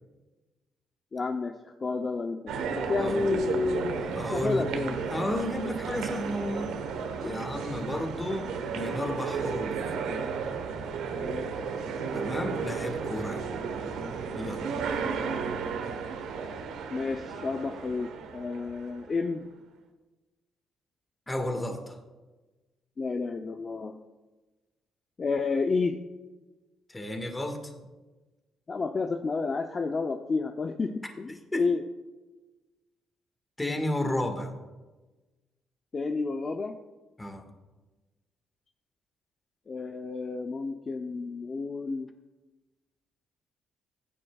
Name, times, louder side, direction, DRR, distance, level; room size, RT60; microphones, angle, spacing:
voice 1, 1.1-4.9 7.2-7.4 11.1-11.5 16.9-19.5 23.0-24.0 25.2-26.0 28.7-31.8 35.9-36.8 39.7-42.1, left 4 dB, 35° left, 5 dB, 0.6 m, -31 dB
sound 1, 2.5-19.1, right 5 dB, 85° right, 1.1 m, -33 dB
voice 2, 3.0-3.3 4.1-4.6 5.1-6.7 7.2-9.8 12.1-13.5 14.4-14.6 21.3-22.0 26.9-27.7 31.5-31.7 33.6-34.5 37.2-37.5, left 1 dB, 15° left, 5 dB, 1.6 m, -32 dB
15.5 x 9.9 x 2.3 m, 1.2 s
cardioid pair, 90°, 0 cm